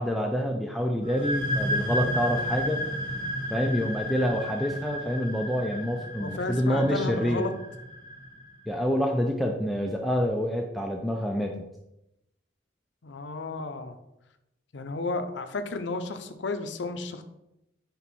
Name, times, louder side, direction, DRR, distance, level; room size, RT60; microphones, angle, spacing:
voice 1, 0.0-2.8 3.5-7.4 8.7-11.6, equal, ahead, 1 dB, 0.3 m, -27 dB
sound 1, 1.0-8.5, equal, 25° right, 0.9 m, -32 dB
voice 2, 6.2-7.5 13.0-14.0 14.7-17.2, left 3 dB, 70° left, 8 dB, 0.6 m, -32 dB
5.3 x 4.5 x 4.1 m, 0.87 s
head